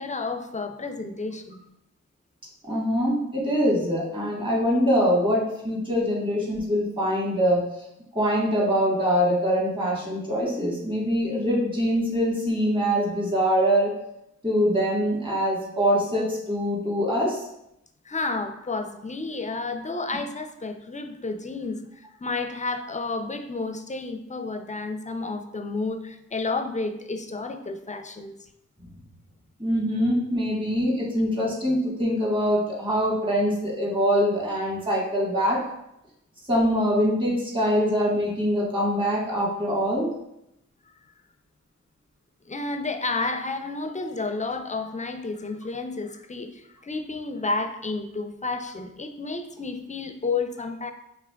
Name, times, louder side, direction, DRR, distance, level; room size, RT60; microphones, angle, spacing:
voice 1, 0.0-1.6 18.1-28.4 42.5-50.9, left 3 dB, 25° left, 8 dB, 0.5 m, -31 dB
voice 2, 2.6-7.6 8.1-13.9 14.4-17.4 29.6-35.6 36.5-40.1, equal, 15° right, -4 dB, 1.5 m, -23 dB
4.9 x 3.2 x 2.3 m, 0.82 s
supercardioid pair, 40°, 31 cm